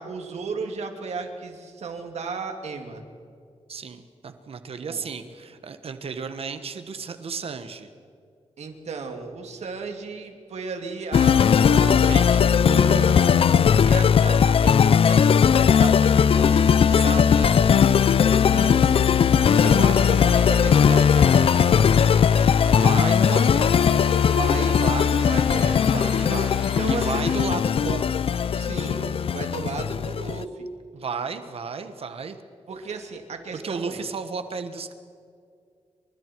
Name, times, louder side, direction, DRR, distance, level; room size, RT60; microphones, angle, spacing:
voice 1, 0.0-3.0 4.9-5.0 8.6-12.2 12.5-13.2 13.8-17.1 18.2-19.2 19.6-21.8 24.1-24.8 25.3-25.9 26.5-27.5 28.5-30.7 32.7-34.0, right 4 dB, 85° right, 4 dB, 3.1 m, -34 dB
voice 2, 3.7-7.9 11.7-12.5 16.9-17.6 22.7-23.8 24.8-25.4 25.9-28.1 30.9-32.4 33.5-34.9, right 5 dB, 60° right, 9 dB, 1.4 m, -33 dB
sound 1, 11.1-30.4, left 7 dB, 60° left, 0.5 m, -18 dB
Rain, 19.4-27.4, right 1 dB, 10° right, 4.3 m, -39 dB
29.0 x 25.0 x 4.7 m, 2.3 s
wide cardioid pair, 155°, 11 cm